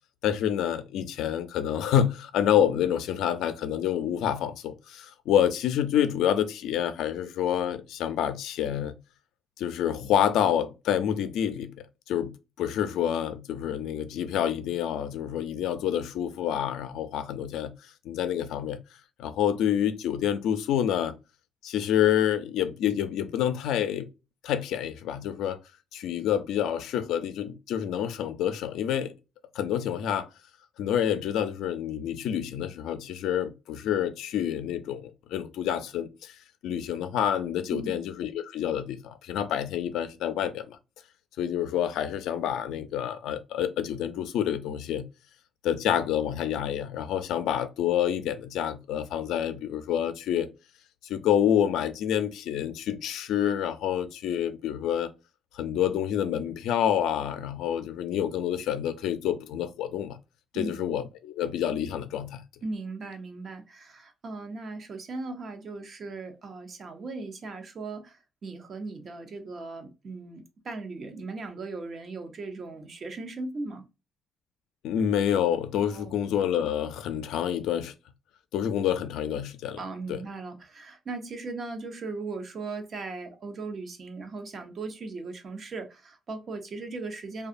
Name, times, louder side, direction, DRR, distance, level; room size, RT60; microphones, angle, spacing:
voice 1, 0.2-9.0 9.6-17.7 18.0-18.8 19.2-21.2 21.6-24.1 24.4-25.6 25.9-29.1 29.5-30.3 30.8-36.4 36.6-40.8 41.4-45.1 45.6-50.5 51.0-55.1 55.5-60.2 60.5-62.4 74.8-77.9 78.5-79.8 80.1-80.2, left 10 dB, 85° left, 0.4 m, -28 dB
voice 2, 62.6-73.8 75.9-76.1 79.8-87.5, right 3 dB, 50° right, 0.7 m, -38 dB
2.7 x 2.3 x 2.5 m
cardioid pair, 90°, 0 cm